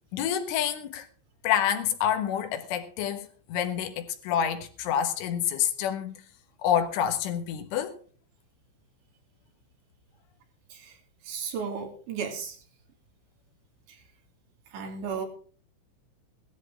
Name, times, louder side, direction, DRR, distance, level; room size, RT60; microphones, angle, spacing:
voice 1, 0.1-1.1 1.4-6.2 6.6-8.0, left 9 dB, 80° left, 3.8 m, -28 dB
voice 2, 11.2-12.6 13.9-14.0 14.7-15.3, right 6 dB, 65° right, 4.7 m, -34 dB
18.0 x 13.5 x 3.8 m
omnidirectional pair, 5.6 m